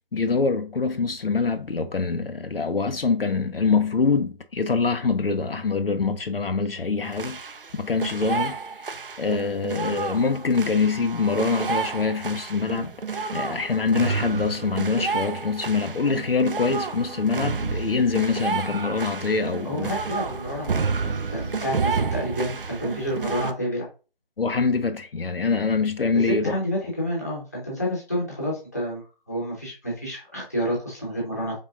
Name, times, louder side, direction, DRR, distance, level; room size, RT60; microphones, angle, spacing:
voice 1, 0.1-7.4 7.7-8.9 9.2-19.9 24.4-26.6, left 4 dB, 65° left, 0.6 m, -24 dB
sound 1, 7.0-23.5, right 5 dB, 60° right, 0.5 m, -30 dB
voice 2, 19.6-23.9 26.2-31.6, equal, 15° left, 0.9 m, -29 dB
4.2 x 3.7 x 2.5 m
figure-of-eight pair, 170°, 30 cm